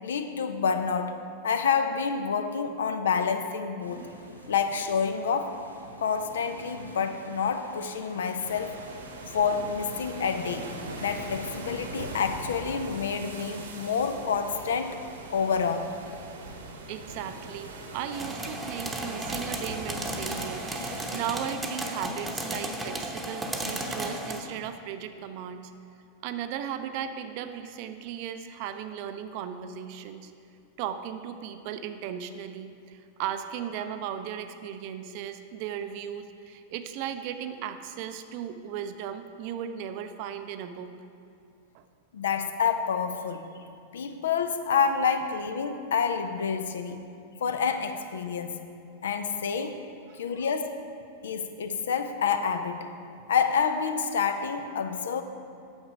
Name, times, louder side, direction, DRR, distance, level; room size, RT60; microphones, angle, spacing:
voice 1, 0.0-1.2 1.4-4.1 4.5-5.6 6.0-8.8 9.3-10.7 11.0-15.0 15.3-15.9 42.1-43.5 43.9-47.0 47.4-48.6 49.0-49.8 50.1-50.7 51.2-52.9 53.3-55.2, left 6 dB, 65° left, 8 dB, 0.5 m, -28 dB
sound 1, 3.8-12.2, right 1 dB, 85° right, 1.0 m, -45 dB
sound 2, 8.4-21.4, right 2 dB, 65° right, 1.1 m, -42 dB
voice 2, 16.9-25.7 26.2-30.3 30.8-40.9 41.7-41.8 50.1-50.5, right 9 dB, 45° right, 9 dB, 0.5 m, -36 dB
sound 3, 18.1-24.4, right 1 dB, 10° right, 0.9 m, -34 dB
8.8 x 7.2 x 5.0 m, 2.5 s
figure-of-eight pair, 90°, 0 cm